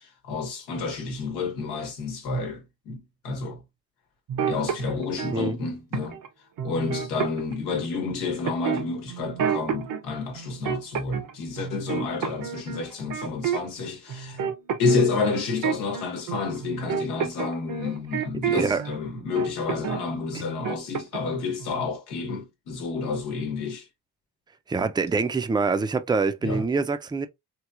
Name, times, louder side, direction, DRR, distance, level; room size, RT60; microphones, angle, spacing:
voice 1, 0.0-3.6 4.4-6.2 6.6-14.4 14.8-23.9 26.4-26.6, left 4 dB, 85° left, 1.1 m, -29 dB
sound 1, 4.3-5.4 5.9-6.3 6.6-7.9 8.5-10.0 10.4-11.3 11.6-13.8 14.1-19.0 19.4-20.0 20.3-21.4 21.6-21.9, right 7 dB, 55° right, 0.7 m, -30 dB
voice 2, 18.5-18.8 24.7-27.3, right 4 dB, 10° right, 0.4 m, -25 dB
3.0 x 2.8 x 2.4 m
supercardioid pair, 50°, 39 cm